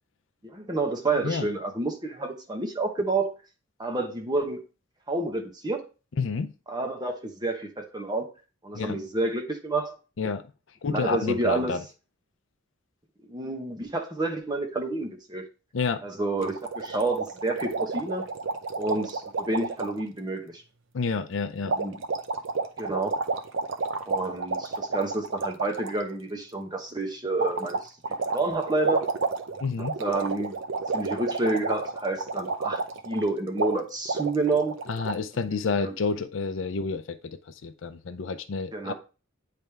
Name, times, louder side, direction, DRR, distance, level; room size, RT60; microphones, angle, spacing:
voice 1, 0.4-3.3 3.8-4.6 5.1-5.8 6.7-8.3 8.6-10.0 10.9-11.8 13.3-15.4 16.0-18.3 18.8-20.6 21.6-22.0 22.8-23.2 24.1-27.9 28.3-29.1 30.0-30.6 30.9-34.8 35.8-35.9 38.7-38.9, right 2 dB, 20° right, 1.0 m, -29 dB
voice 2, 6.2-6.5 8.7-9.0 10.2-10.5 10.8-11.8 15.7-16.0 20.9-21.8 29.6-30.0 34.9-38.9, left 4 dB, 70° left, 0.5 m, -29 dB
sound 1, 16.4-20.0 21.7-26.0 27.4-33.3 33.6-33.7 34.1-35.1, right 4 dB, 70° right, 0.6 m, -30 dB
8.8 x 3.4 x 3.4 m
head